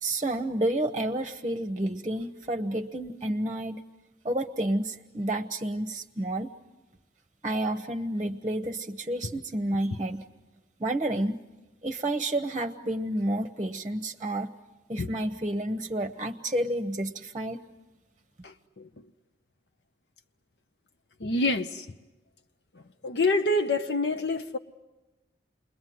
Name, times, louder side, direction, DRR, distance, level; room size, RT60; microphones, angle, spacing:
voice 1, 0.0-3.8 4.2-6.5 7.4-10.2 10.8-11.4 11.8-14.5 14.9-17.6, right 1 dB, 25° right, 0.9 m, -30 dB
voice 2, 18.4-18.9 21.2-21.9 23.0-24.6, left 2 dB, 70° left, 0.8 m, -27 dB
29.0 x 21.5 x 9.3 m
head